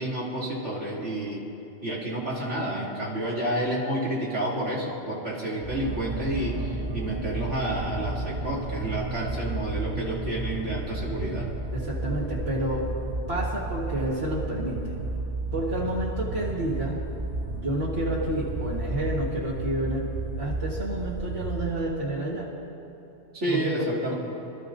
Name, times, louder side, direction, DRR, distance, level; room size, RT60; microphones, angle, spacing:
voice 1, 0.0-1.5 1.8-11.5 23.3-24.1, right 1 dB, 85° right, -6 dB, 3.1 m, -30 dB
sound 1, 5.6-21.9, right 2 dB, 40° right, 0.3 m, -32 dB
voice 2, 11.7-12.9 13.3-15.0 15.5-17.0 17.5-20.1 20.3-22.5 23.5-23.7, right 1 dB, 65° right, -6 dB, 1.8 m, -30 dB
25.0 x 13.0 x 2.6 m, 2.9 s
omnidirectional pair, 1.2 m